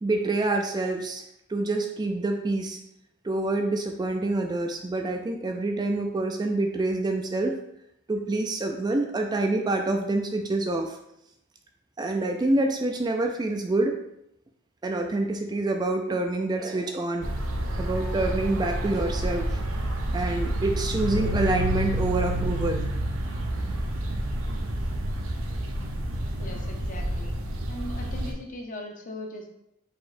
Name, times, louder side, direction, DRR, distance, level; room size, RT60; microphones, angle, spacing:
voice 1, 0.0-1.2 1.5-2.8 3.2-7.6 8.1-11.0 12.0-14.0 14.8-17.3 17.8-19.6 20.1-22.9, right 2 dB, 20° right, 4 dB, 0.3 m, -27 dB
sound 1, 17.2-28.3, right 1 dB, 85° right, 0.6 m, -29 dB
voice 2, 26.4-27.3 27.7-29.5, left 1 dB, 40° left, 2 dB, 0.7 m, -39 dB
4.6 x 4.1 x 2.5 m, 0.78 s
head